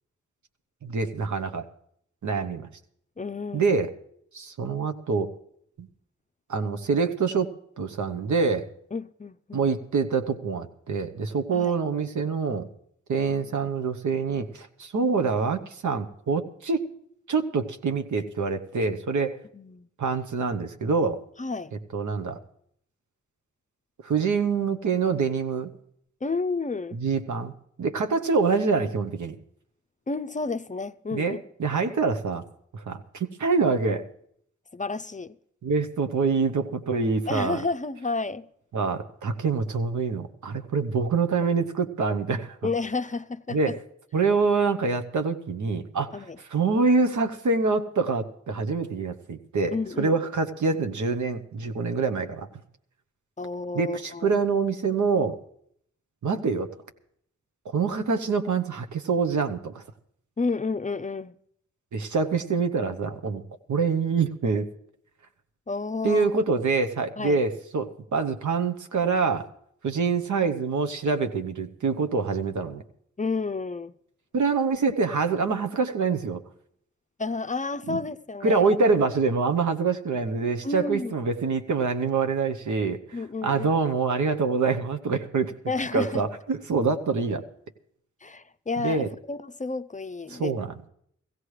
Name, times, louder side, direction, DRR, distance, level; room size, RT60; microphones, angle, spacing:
voice 1, 0.8-1.6 2.2-2.7 3.5-3.9 4.3-5.3 5.8-5.9 6.5-7.5 7.8-8.7 9.5-12.7 13.1-16.8 17.3-19.4 20.0-21.2 21.9-22.4 24.0-25.7 26.9-27.5 27.8-29.4 31.1-32.4 32.7-34.0 35.6-37.6 38.7-42.6 43.5-43.8 44.1-52.6 53.7-55.4 56.2-56.7 57.6-59.8 61.9-63.4 63.7-64.7 66.0-69.5 69.8-72.8 74.3-76.4 77.9-78.0 78.4-85.5 85.9-87.4 88.8-89.1 90.3-90.9, right 4 dB, 85° right, 1.0 m, -25 dB
voice 2, 3.2-3.8 8.9-9.7 11.5-11.7 19.5-19.9 21.4-21.7 26.2-27.0 30.1-31.4 34.7-35.4 37.3-38.5 42.6-43.8 46.1-46.4 49.7-50.1 53.4-54.4 60.4-61.3 65.7-66.3 67.2-67.4 73.2-73.9 77.2-78.7 80.6-81.1 83.1-83.7 85.7-86.2 88.2-90.5, left 3 dB, 25° left, 0.5 m, -31 dB
16.0 x 16.0 x 3.2 m
cardioid pair, 45°, 29 cm